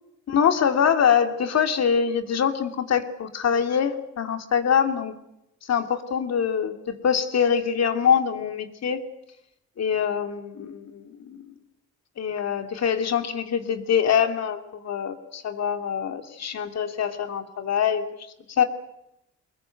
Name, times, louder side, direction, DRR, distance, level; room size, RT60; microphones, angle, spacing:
voice 1, 0.3-5.1 5.6-9.0 9.8-11.5 12.2-18.1 18.5-18.6, left 7 dB, 60° left, 7 dB, 2.8 m, -24 dB
24.0 x 20.5 x 9.2 m, 0.85 s
cardioid pair, 90°, 30 cm